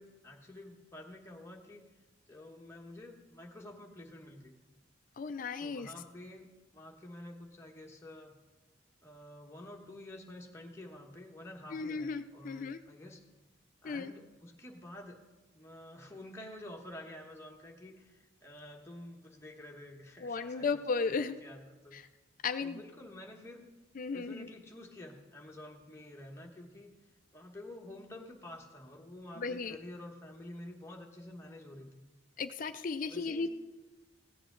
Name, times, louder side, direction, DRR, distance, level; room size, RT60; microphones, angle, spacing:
voice 1, 0.0-1.8 2.3-4.5 5.6-8.3 9.0-13.2 13.8-15.2 15.5-20.7 21.1-22.0 22.6-23.7 24.1-26.9 27.3-32.0 33.1-33.5, left 1 dB, 15° left, 0 dB, 1.2 m, -49 dB
voice 2, 5.2-5.9 11.7-12.8 13.8-14.1 20.2-21.3 21.9-22.0 22.4-22.8 24.0-24.5 29.4-29.8 32.4-33.5, left 4 dB, 45° left, 11 dB, 0.4 m, -35 dB
15.5 x 7.8 x 3.8 m, 1.2 s
head